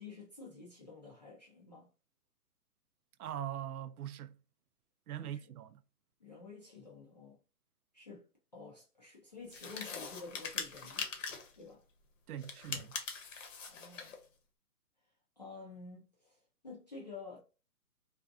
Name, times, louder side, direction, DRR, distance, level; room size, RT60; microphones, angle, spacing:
voice 1, 0.0-1.9 5.2-5.4 6.2-7.4 7.9-8.2 8.5-11.1 11.6-11.8 13.7-14.2 15.4-17.4, left 4 dB, 30° left, 0.4 m, -50 dB
voice 2, 3.2-4.4 5.1-5.8 12.3-13.0, right 11 dB, 70° right, 0.5 m, -42 dB
sound 1, 9.5-11.6 12.4-14.2, left 5 dB, 55° left, 0.8 m, -42 dB
2.6 x 2.4 x 2.3 m
hypercardioid pair, 155°, 45 cm